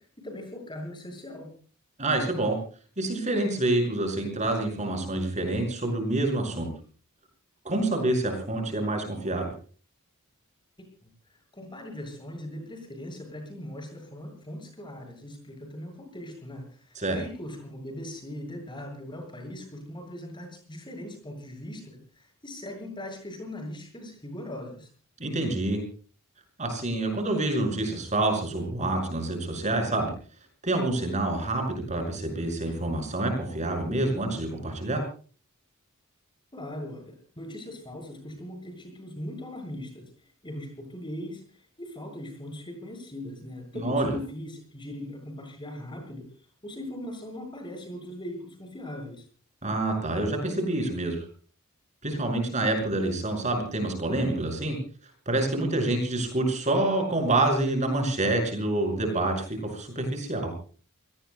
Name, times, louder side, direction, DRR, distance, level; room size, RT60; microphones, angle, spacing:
voice 1, 0.0-1.5 11.5-24.9 36.5-40.0 40.4-41.4 41.8-46.3 46.6-49.3 55.5-55.9, left 1 dB, 20° left, 3 dB, 7.3 m, -40 dB
voice 2, 2.0-2.6 3.0-6.7 7.6-9.5 16.9-17.2 25.2-25.8 26.6-30.1 30.6-35.0 43.7-44.2 49.6-51.2 52.0-54.8 55.3-59.4 59.7-60.5, right 2 dB, 35° right, 3 dB, 6.2 m, -27 dB
29.0 x 18.5 x 2.3 m, 0.41 s
head